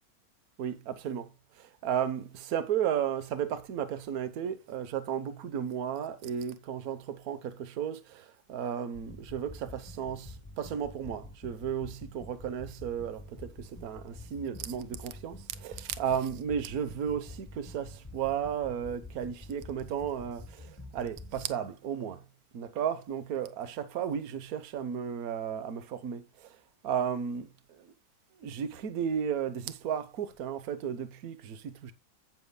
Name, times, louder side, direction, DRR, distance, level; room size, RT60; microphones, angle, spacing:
voice 1, 0.6-1.3 1.6-22.2 22.5-26.2 26.8-27.5 27.8-27.9 28.4-31.9, right 8 dB, 60° right, 1.4 m, -34 dB
sound 1, 8.9-21.5, left 2 dB, 10° left, 1.0 m, -47 dB
10.5 x 9.6 x 2.2 m
omnidirectional pair, 1.9 m